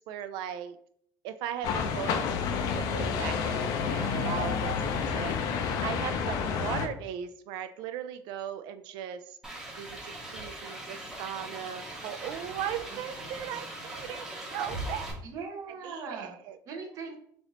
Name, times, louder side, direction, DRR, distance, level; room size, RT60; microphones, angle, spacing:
voice 1, 0.1-0.8 1.2-5.4 5.8-9.4 9.8-15.1 15.8-16.6, right 10 dB, 70° right, 10 dB, 0.3 m, -38 dB
sound 1, 1.6-6.9, left 6 dB, 55° left, 0.5 m, -29 dB
sound 2, 9.4-15.1, right 1 dB, 5° right, 0.6 m, -40 dB
voice 2, 12.9-14.2 15.2-16.3 16.7-17.2, right 5 dB, 45° right, 2 dB, 0.7 m, -42 dB
3.4 x 2.5 x 4.0 m, 0.64 s
cardioid pair, 175°, 8 cm